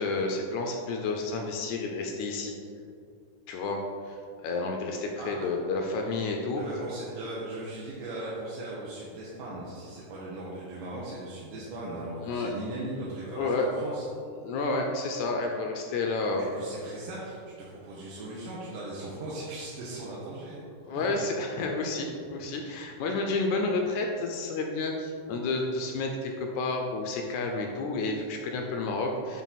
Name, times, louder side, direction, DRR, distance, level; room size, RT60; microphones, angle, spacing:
voice 1, 0.0-2.5 3.5-4.2 4.4-6.6 12.2-12.5 13.3-13.7 14.4-16.4 20.9-29.4, left 3 dB, 80° left, 2 dB, 1.7 m, -30 dB
voice 2, 5.2-5.5 6.6-14.1 16.3-21.0, right 2 dB, 85° right, -6 dB, 2.4 m, -38 dB
8.3 x 3.6 x 4.0 m, 2.4 s
omnidirectional pair, 3.7 m